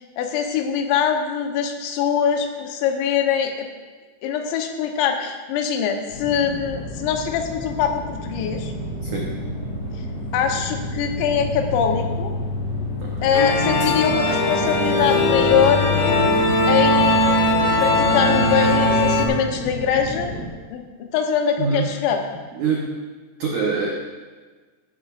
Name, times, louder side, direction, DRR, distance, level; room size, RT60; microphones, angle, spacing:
voice 1, 0.2-3.7 4.2-8.7 10.3-12.3 13.2-16.0 16.7-17.2 17.8-20.3 20.7-22.2, left 7 dB, 80° left, 4 dB, 3.2 m, -23 dB
sound 1, 6.1-20.5, left 1 dB, 40° left, 4.2 m, -30 dB
voice 2, 9.0-9.3 13.0-13.4 21.6-21.9 22.5-22.9 23.4-23.9, right 5 dB, 85° right, -2 dB, 1.7 m, -25 dB
sound 2, 13.3-19.3, left 1 dB, 65° left, 3.0 m, -19 dB
14.5 x 12.0 x 2.5 m, 1.4 s
omnidirectional pair, 5.2 m